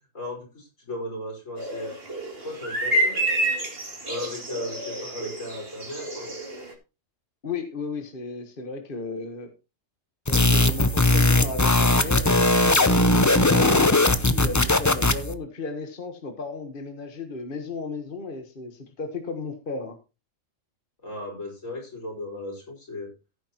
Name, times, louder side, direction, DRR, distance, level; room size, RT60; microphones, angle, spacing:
voice 1, 0.1-2.0 2.4-3.2 4.1-6.4 21.0-23.1, left 1 dB, 80° left, 0 dB, 5.9 m, -36 dB
sound 1, 1.6-6.7, right 1 dB, 50° right, 3.1 m, -28 dB
voice 2, 7.4-9.5 10.3-20.0, left 3 dB, 45° left, 5 dB, 1.6 m, -35 dB
sound 2, 10.3-15.3, left 2 dB, 20° left, 0.6 m, -19 dB
15.5 x 9.2 x 3.0 m, 0.29 s
omnidirectional pair, 1.3 m